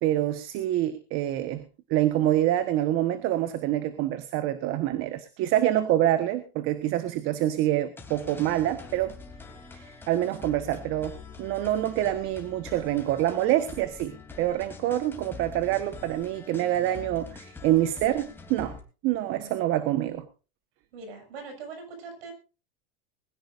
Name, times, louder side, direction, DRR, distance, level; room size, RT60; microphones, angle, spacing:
voice 1, 0.0-9.2 9.7-18.8 19.0-20.2, right 13 dB, 45° right, 10 dB, 1.4 m, -26 dB
sound 1, 8.0-18.8, left 4 dB, 5° left, 3.2 m, -45 dB
voice 2, 20.9-22.3, right 4 dB, 90° right, 5 dB, 7.3 m, -42 dB
21.0 x 16.0 x 2.6 m, 0.34 s
supercardioid pair, 140°, 29 cm